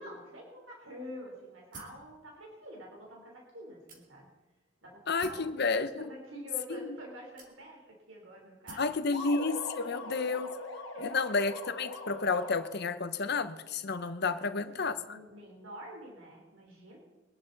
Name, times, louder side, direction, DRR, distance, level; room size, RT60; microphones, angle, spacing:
voice 1, 0.0-4.3 4.8-9.2 10.0-10.4 10.9-11.2 14.2-17.0, equal, 75° right, -1 dB, 3.9 m, -48 dB
sound 1, 1.7-2.1 2.8-2.9 3.9-4.4 5.2-5.5 6.5-6.6 7.4-7.9 8.7-9.0, right 2 dB, 45° right, 2.7 m, -49 dB
voice 2, 5.1-6.1 6.7-6.9 8.8-10.5 11.0-15.2, left 4 dB, 55° left, 10 dB, 1.0 m, -31 dB
sound 2, 9.1-13.0, left 2 dB, 80° left, 2.0 m, -41 dB
23.5 x 10.5 x 4.1 m, 1.2 s
head